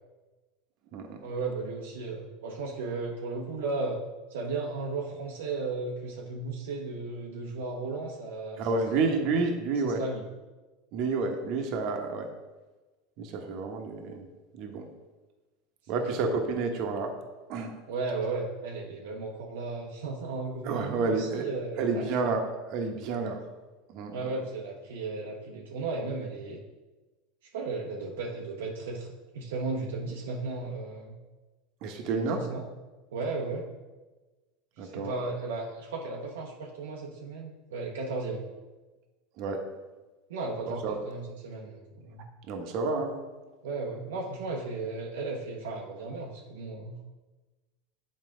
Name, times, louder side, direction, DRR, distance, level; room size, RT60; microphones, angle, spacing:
voice 1, 1.2-4.0 4.3-8.7 8.9-9.1 9.8-10.2 15.9-16.2 17.9-22.2 24.1-26.6 27.5-29.1 29.3-31.2 32.0-32.6 33.1-33.7 34.8-38.4 40.3-42.2 43.6-47.0, right 3 dB, 80° right, -1 dB, 0.8 m, -35 dB
voice 2, 8.6-10.0 10.9-12.3 13.2-14.3 14.5-14.9 15.9-17.1 17.5-17.8 20.6-21.5 21.8-22.4 22.7-23.4 23.9-24.3 31.8-32.4 34.8-35.1 39.4-39.6 40.6-41.0 42.5-43.1, right 4 dB, 55° right, 4 dB, 1.0 m, -30 dB
7.7 x 4.2 x 3.7 m, 1.2 s
hypercardioid pair, 95°, 0 cm